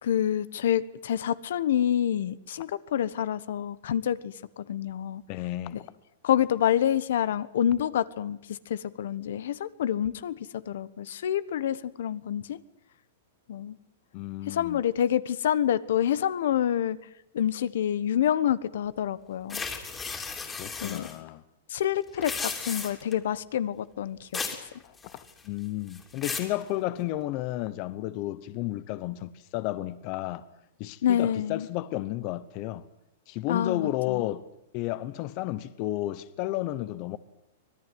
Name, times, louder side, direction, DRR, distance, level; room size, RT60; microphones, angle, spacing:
voice 1, 0.0-5.2 6.2-8.4 8.7-10.4 10.7-12.6 13.5-13.7 14.5-17.0 17.3-19.6 20.8-21.1 21.7-24.4 31.0-31.7 33.5-34.2, left 10 dB, 70° left, 1.2 m, -27 dB
voice 2, 5.3-5.8 14.1-14.8 20.5-21.4 24.8-30.4 30.8-32.9 33.3-34.4 34.7-37.2, left 15 dB, 35° left, 0.9 m, -32 dB
sound 1, 19.5-21.1 22.1-23.1 24.3-24.6 25.0-25.5 25.9-26.5, left 4 dB, 10° left, 3.1 m, -35 dB
25.5 x 18.5 x 9.4 m
supercardioid pair, 165°, 0 cm